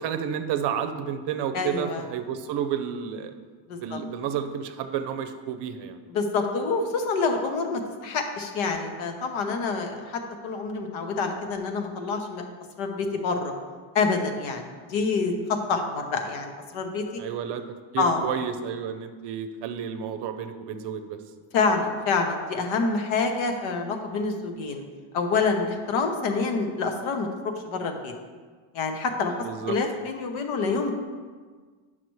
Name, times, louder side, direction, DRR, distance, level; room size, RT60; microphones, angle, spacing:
voice 1, 0.0-3.3 3.8-6.0 17.2-17.6 17.9-21.2 29.4-29.8, right 8 dB, 55° right, 8 dB, 0.6 m, -31 dB
voice 2, 1.5-2.0 3.7-4.0 6.1-12.4 12.8-13.5 13.9-17.2 18.0-18.3 21.5-24.8 25.1-28.1 28.7-30.9, left 4 dB, 70° left, 4 dB, 1.1 m, -27 dB
8.9 x 5.9 x 3.1 m, 1.5 s
cardioid pair, 140°, 50 cm